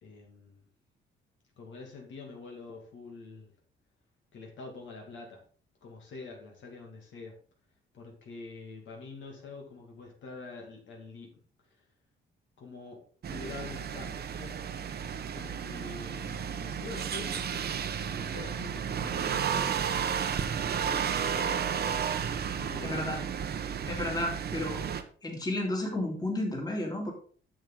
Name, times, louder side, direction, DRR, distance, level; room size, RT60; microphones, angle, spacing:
voice 1, 0.0-0.7 1.6-3.5 4.3-5.4 5.8-7.3 7.9-11.3 11.7-11.8 12.6-13.0 13.3-14.6 15.3-19.8 20.8-21.7 22.6-23.1, left 3 dB, 70° left, 1 dB, 2.5 m, -46 dB
sound 1, 13.2-25.0, right 7 dB, 55° right, 0.9 m, -32 dB
voice 2, 22.8-23.2 23.9-24.8 25.2-27.1, left 1 dB, 20° left, 1 dB, 2.4 m, -32 dB
7.7 x 7.0 x 3.8 m, 0.44 s
cardioid pair, 90°, 20 cm